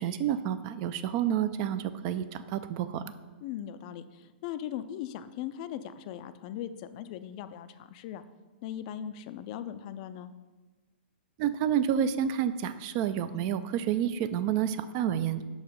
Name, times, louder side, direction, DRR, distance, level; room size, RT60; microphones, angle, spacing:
voice 1, 0.0-3.1 11.4-15.4, right 9 dB, 35° right, 13 dB, 0.3 m, -29 dB
voice 2, 3.4-8.2 8.6-10.3, left 10 dB, 40° left, 12 dB, 0.3 m, -39 dB
5.4 x 4.7 x 5.2 m, 1.2 s
hypercardioid pair, 140°, 6 cm